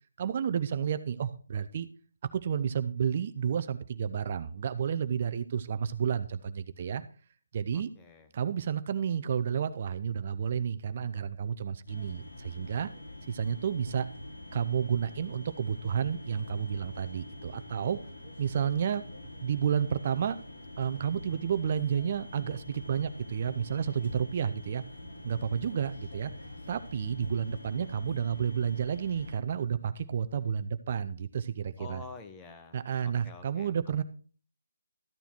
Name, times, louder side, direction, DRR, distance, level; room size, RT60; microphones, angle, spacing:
voice 1, 0.2-1.9 2.3-7.0 7.5-7.9 8.3-12.9 13.3-14.1 14.5-18.0 18.4-19.0 19.4-20.4 20.8-24.8 25.2-26.3 26.7-32.0 32.7-34.0, right 8 dB, 40° right, 12 dB, 0.6 m, -31 dB
voice 2, 7.7-8.3 31.8-33.7, left 4 dB, 15° left, 7 dB, 1.0 m, -48 dB
sound 1, 11.9-29.4, left 1 dB, 65° left, 4.7 m, -45 dB
13.5 x 7.0 x 4.4 m, 0.40 s
hypercardioid pair, 160°, 0 cm